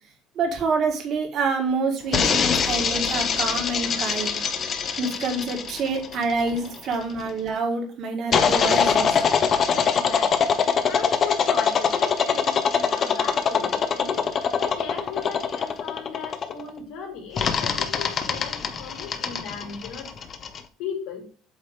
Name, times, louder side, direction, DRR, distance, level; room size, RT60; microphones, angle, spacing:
voice 1, 0.4-4.4 5.0-9.2, right 3 dB, 50° right, 3 dB, 1.8 m, -27 dB
sound 1, 2.1-7.0 8.3-16.7 17.4-20.6, left 6 dB, 40° left, 0.8 m, -23 dB
voice 2, 9.9-10.5 10.9-14.2 14.6-20.1 20.8-21.2, left 6 dB, 80° left, -2 dB, 3.2 m, -36 dB
8.1 x 3.0 x 4.7 m, 0.40 s
cardioid pair, 125°, 0 cm